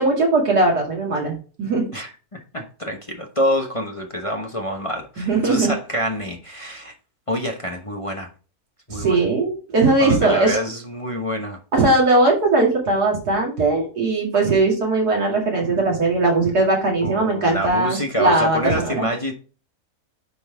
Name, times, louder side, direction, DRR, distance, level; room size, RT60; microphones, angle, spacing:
voice 1, 0.0-1.9 5.2-5.7 8.9-10.6 11.7-19.1, right 2 dB, 85° right, -1 dB, 2.8 m, -19 dB
voice 2, 1.9-6.9 7.3-8.3 8.9-9.2 10.0-11.6 17.0-19.3, equal, 25° left, 2 dB, 0.9 m, -26 dB
9.4 x 4.0 x 3.5 m, 0.36 s
omnidirectional pair, 1.6 m